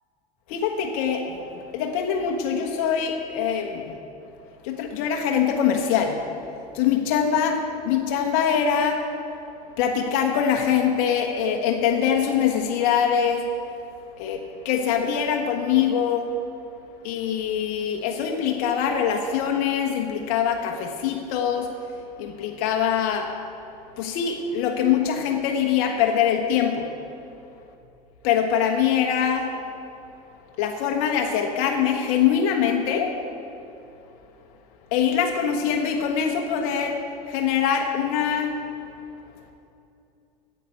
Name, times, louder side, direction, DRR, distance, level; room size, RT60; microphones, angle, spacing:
voice 1, 0.5-4.0 4.6-6.2 6.7-9.0 9.8-13.5 14.2-16.3 17.0-21.7 22.2-23.3 24.0-26.9 28.2-29.5 30.6-33.2 34.9-38.6, left 8 dB, 70° left, 2 dB, 1.3 m, -23 dB
9.9 x 8.3 x 8.7 m, 2.7 s
supercardioid pair, 100°, 19 cm